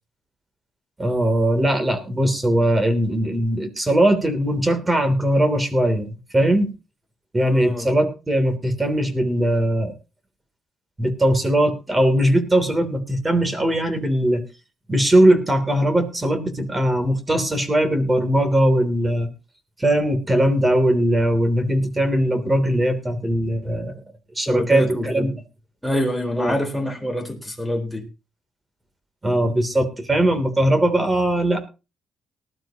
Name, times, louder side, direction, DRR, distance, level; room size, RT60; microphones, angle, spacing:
voice 1, 1.0-6.1 6.3-6.7 7.3-9.9 11.0-14.4 14.9-19.3 19.8-24.0 24.3-25.3 26.4-26.6 29.2-31.6, right 1 dB, 20° right, 8 dB, 3.1 m, -20 dB
voice 2, 7.4-7.9 24.5-25.3 25.8-28.1, equal, ahead, 6 dB, 4.3 m, -25 dB
19.5 x 12.0 x 2.9 m, 0.31 s
cardioid pair, 90°, 0 cm